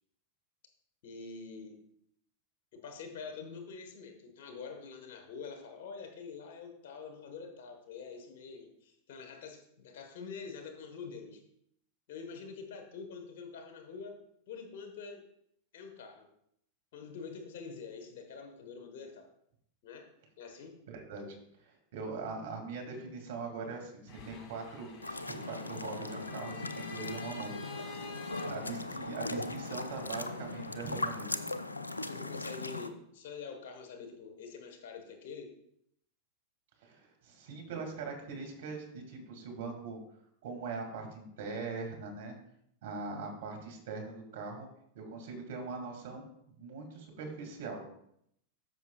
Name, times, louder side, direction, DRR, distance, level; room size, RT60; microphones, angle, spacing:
voice 1, 1.0-1.8 2.7-11.4 12.1-14.2 14.5-15.3 15.7-16.3 16.9-19.3 19.8-20.1 20.4-20.7 32.1-35.5, left 5 dB, 55° left, 5 dB, 1.5 m, -46 dB
voice 2, 20.9-21.3 21.6-27.5 28.4-31.3 36.8-40.0 40.4-42.3 42.8-44.7 44.9-47.8, right 4 dB, 55° right, 3 dB, 2.5 m, -41 dB
sound 1, 24.1-31.2, left 5 dB, 40° left, 2.1 m, -51 dB
sound 2, 25.0-32.9, left 2 dB, 80° left, 0.5 m, -39 dB
13.0 x 6.1 x 2.5 m, 0.73 s
figure-of-eight pair, 90°, 0 cm